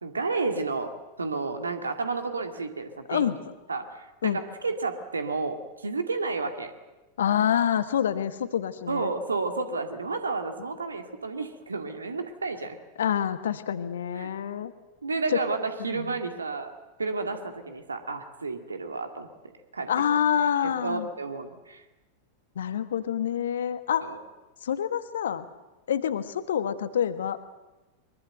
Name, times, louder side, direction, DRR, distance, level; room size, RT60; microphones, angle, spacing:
voice 1, 0.0-3.3 3.7-6.7 8.9-12.8 14.2-14.4 15.0-19.3 19.7-19.9 20.8-21.8 24.0-24.2, right 3 dB, 75° right, 6 dB, 2.2 m, -31 dB
voice 2, 3.1-3.5 4.2-4.4 7.2-9.1 13.0-14.7 15.3-15.4 15.8-16.2 19.9-21.1 22.5-24.1 24.6-25.5 25.9-27.4, left 9 dB, 65° left, 12 dB, 1.5 m, -27 dB
23.5 x 22.5 x 8.0 m, 1.1 s
figure-of-eight pair, 90°, 0 cm